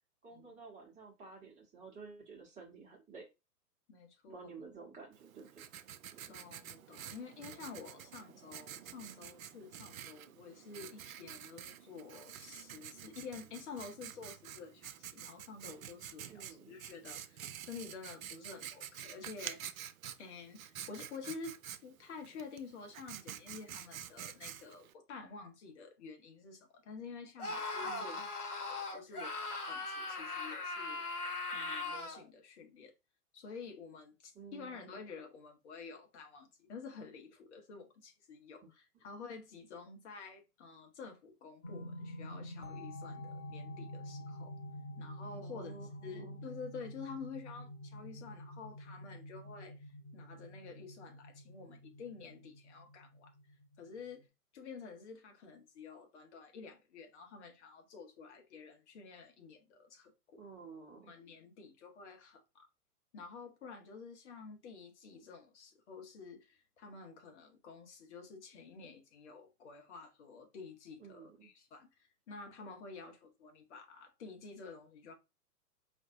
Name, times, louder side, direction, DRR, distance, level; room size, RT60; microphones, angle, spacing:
voice 1, 0.2-3.3 4.3-5.6 6.1-6.3 16.3-16.8 27.8-28.3 34.3-35.0 45.3-46.4 60.4-61.1 71.0-71.5, right 5 dB, 15° right, 1.1 m, -52 dB
voice 2, 3.9-4.6 6.3-19.6 20.2-31.0 31.5-32.9 33.3-44.5 45.0-53.3 53.8-54.3 54.5-60.4 60.9-62.7 63.1-75.1, left 5 dB, 45° left, 1.1 m, -50 dB
Writing, 5.1-24.9, right 10 dB, 65° right, 0.5 m, -49 dB
Screaming, 27.4-32.2, left 3 dB, 70° left, 1.3 m, -39 dB
sound 1, 41.6-54.2, left 1 dB, 15° left, 0.3 m, -48 dB
4.9 x 2.6 x 2.6 m
figure-of-eight pair, 110°, 46 cm